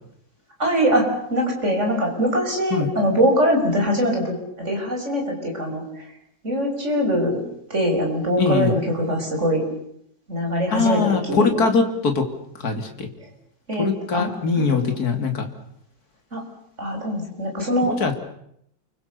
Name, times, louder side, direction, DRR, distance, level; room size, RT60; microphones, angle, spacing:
voice 1, 0.6-5.8 6.4-7.4 7.7-9.6 10.3-11.5 13.7-13.9 14.1-14.9 16.3-16.4 16.8-18.0, equal, 35° right, 1 dB, 6.7 m, -22 dB
voice 2, 8.4-8.8 10.7-12.3 12.6-13.1 13.8-15.5 17.8-18.2, left 4 dB, 50° left, 5 dB, 3.3 m, -22 dB
29.5 x 24.0 x 6.9 m, 0.74 s
omnidirectional pair, 2.1 m